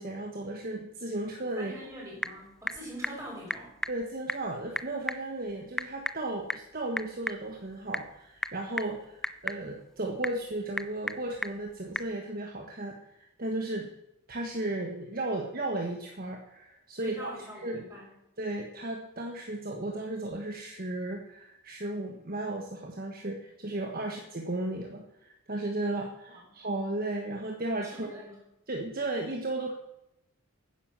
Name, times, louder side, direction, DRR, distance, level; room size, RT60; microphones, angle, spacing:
voice 1, 0.0-1.7 3.9-13.9 14.3-17.3 17.6-17.8 18.4-28.1 28.7-29.7, right 2 dB, 45° right, 1 dB, 1.4 m, -35 dB
Typing / Telephone, 1.6-12.2, left 1 dB, ahead, 0.4 m, -38 dB
voice 2, 1.6-3.8 17.0-18.1 24.0-24.2 26.3-26.4 27.8-28.4, equal, 15° right, -4 dB, 6.2 m, -43 dB
10.0 x 9.8 x 7.5 m, 0.84 s
head